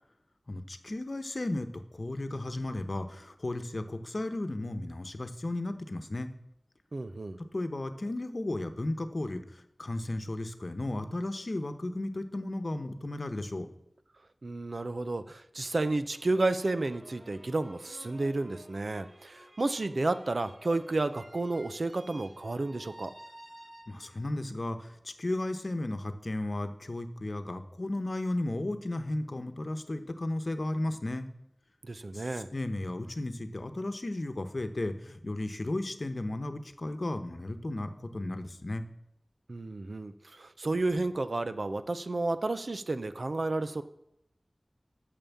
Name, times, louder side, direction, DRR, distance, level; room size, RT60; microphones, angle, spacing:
voice 1, 0.5-1.7 1.9-6.3 7.4-13.7 23.9-31.3 32.1-38.8, left 1 dB, 55° left, 8 dB, 1.0 m, -34 dB
voice 2, 6.9-7.4 14.4-23.1 31.8-32.5 39.5-43.8, right 2 dB, 70° right, 11 dB, 0.6 m, -31 dB
sound 1, 16.1-24.3, right 1 dB, 50° right, 2.1 m, -52 dB
9.0 x 6.8 x 7.2 m, 0.77 s
wide cardioid pair, 65°, 0 cm